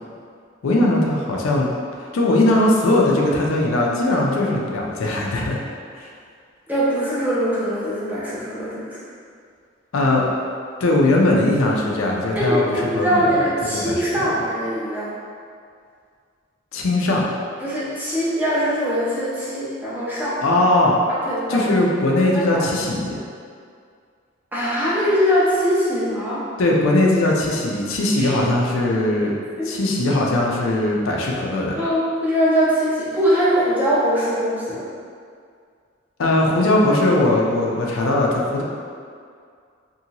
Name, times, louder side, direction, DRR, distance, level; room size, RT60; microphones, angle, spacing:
voice 1, 0.6-1.7 2.0-5.6 6.0-6.1 9.9-10.2 10.8-12.6 12.9-13.4 13.7-14.3 16.7-17.3 20.4-20.9 21.5-23.2 26.6-29.4 29.7-31.7 36.2-38.6, left 1 dB, 90° left, -2 dB, 0.5 m, -19 dB
voice 2, 6.7-9.0 12.4-15.1 17.6-20.4 21.1-21.7 22.3-22.6 24.5-26.4 28.1-28.4 29.6-29.7 31.8-34.8, equal, 10° right, -10 dB, 0.6 m, -22 dB
2.7 x 2.6 x 2.8 m, 2.2 s
head